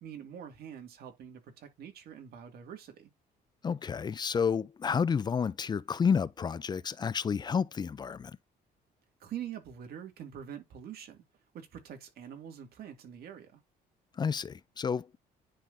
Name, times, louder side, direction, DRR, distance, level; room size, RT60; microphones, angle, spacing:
voice 1, 0.0-3.1 9.2-11.2 11.5-13.6, right 9 dB, 65° right, 2.2 m, -45 dB
voice 2, 3.6-8.4 14.2-15.2, left 6 dB, 25° left, 0.4 m, -30 dB
10.0 x 3.8 x 2.6 m
cardioid pair, 110°, 17 cm